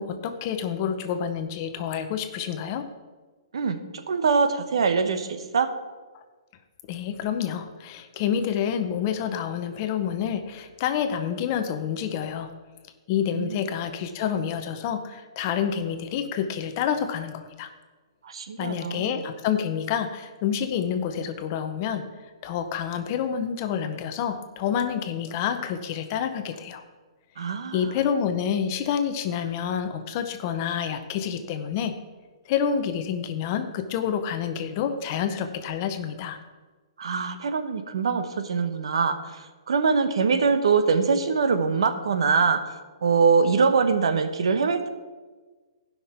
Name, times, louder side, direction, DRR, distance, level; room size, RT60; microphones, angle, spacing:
voice 1, 0.0-2.8 6.9-12.5 13.1-17.7 18.6-22.0 22.4-26.8 27.7-31.9 32.5-36.4, left 8 dB, 30° left, 8 dB, 0.7 m, -28 dB
voice 2, 3.5-5.7 13.3-13.6 18.2-19.2 27.4-27.9 37.0-42.7 43.0-44.9, right 5 dB, 75° right, 9 dB, 1.0 m, -23 dB
16.0 x 5.8 x 4.4 m, 1.3 s
hypercardioid pair, 165°, 3 cm